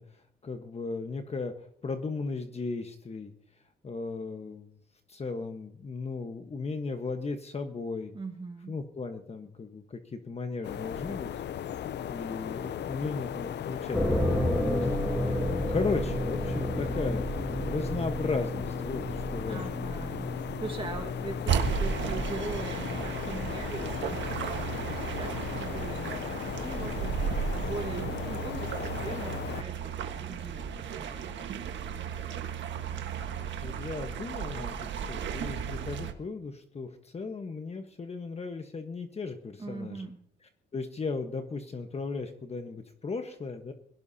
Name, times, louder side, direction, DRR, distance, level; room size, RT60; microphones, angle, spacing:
voice 1, 0.0-3.3 3.8-4.8 5.1-8.1 8.7-11.3 12.1-14.9 15.1-15.4 15.7-19.8 33.5-40.1 40.7-43.7, left 4 dB, 30° left, 6 dB, 1.3 m, -36 dB
voice 2, 8.1-8.8 19.5-27.2 27.5-28.7 29.0-31.3 39.6-40.2, right 3 dB, 25° right, 2 dB, 1.7 m, -41 dB
sound 1, 10.6-29.6, left 10 dB, 60° left, 0.7 m, -37 dB
sound 2, 13.9-28.7, equal, 10° left, 6.5 m, -34 dB
sound 3, 21.5-36.1, right 7 dB, 70° right, 1.6 m, -34 dB
22.0 x 17.0 x 2.8 m, 0.68 s
cardioid pair, 90°, 20 cm